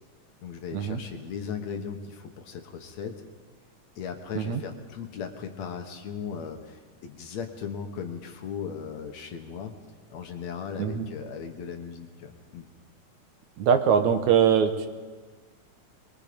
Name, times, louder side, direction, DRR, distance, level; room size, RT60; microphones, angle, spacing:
voice 1, 0.4-3.2 4.0-9.7 10.1-12.7, left 6 dB, 65° left, 5 dB, 2.5 m, -37 dB
voice 2, 13.6-14.9, right 7 dB, 70° right, 8 dB, 2.3 m, -22 dB
22.5 x 22.5 x 5.2 m, 1.4 s
omnidirectional pair, 3.6 m